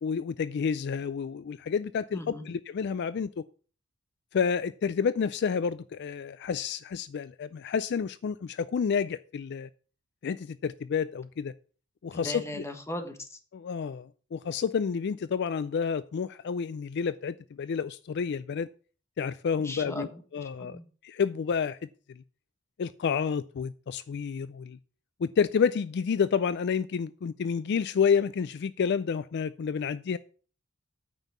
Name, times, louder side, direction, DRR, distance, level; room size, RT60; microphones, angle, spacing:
voice 1, 0.0-3.4 4.3-9.7 10.2-11.5 12.0-12.6 13.5-18.7 19.2-21.8 22.8-24.8 25.2-30.2, left 6 dB, 55° left, 0.4 m, -29 dB
voice 2, 2.1-2.5 12.1-13.4 19.6-20.2 20.6-20.9, left 1 dB, 15° left, 1.3 m, -38 dB
9.1 x 5.6 x 7.2 m
head